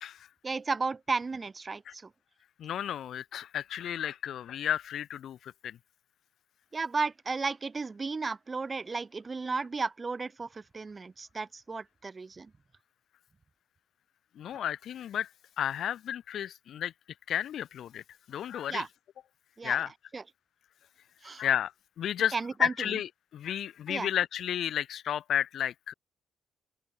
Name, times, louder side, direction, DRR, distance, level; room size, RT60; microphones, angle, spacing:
voice 1, 0.4-2.1 6.7-12.5 18.7-18.9 19.6-19.8 20.1-20.2 21.2-21.4 22.3-22.7 23.9-24.1, right 4 dB, 30° right, 1.2 m, -34 dB
voice 2, 2.6-5.8 14.4-15.3 15.6-16.9 17.3-18.0 18.3-18.8 19.6-19.9 21.4-21.7 22.0-22.3 22.6-25.9, left 10 dB, 70° left, 0.6 m, -32 dB
open air
cardioid pair, 90°, 0 cm